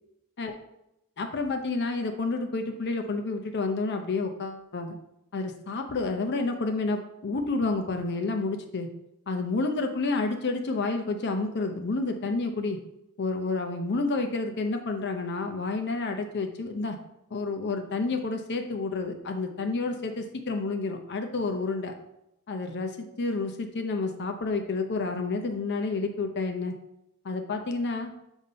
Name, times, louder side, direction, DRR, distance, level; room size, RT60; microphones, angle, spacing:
voice 1, 1.2-5.0 5.3-8.9 9.3-12.8 13.2-17.0 17.3-21.9 22.5-26.7 27.2-28.1, left 3 dB, 50° left, 5 dB, 0.6 m, -29 dB
7.2 x 2.7 x 5.1 m, 0.86 s
head